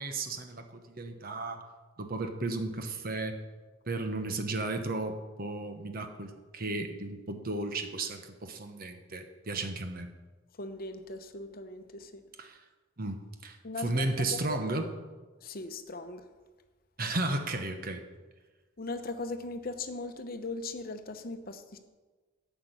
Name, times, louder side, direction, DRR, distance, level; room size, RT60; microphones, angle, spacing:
voice 1, 0.0-1.6 2.0-3.4 3.9-10.1 12.4-12.6 13.0-14.9 17.0-18.0, right 2 dB, 45° right, 7 dB, 1.1 m, -34 dB
voice 2, 10.6-12.2 13.6-14.6 15.4-16.2 18.8-21.6, left 3 dB, 45° left, 8 dB, 0.9 m, -39 dB
10.5 x 6.0 x 8.2 m, 1.3 s
head